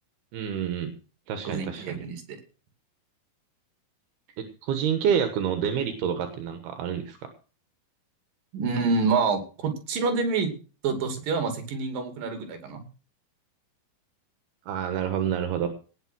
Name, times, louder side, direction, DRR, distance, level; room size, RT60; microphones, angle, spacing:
voice 1, 0.3-0.9 1.3-2.0 4.4-7.2 14.7-15.7, right 8 dB, 85° right, 7 dB, 3.4 m, -28 dB
voice 2, 1.4-2.4 8.5-10.5 10.8-12.8, right 4 dB, 65° right, 6 dB, 4.2 m, -27 dB
18.5 x 6.9 x 6.2 m, 0.36 s
omnidirectional pair, 4.4 m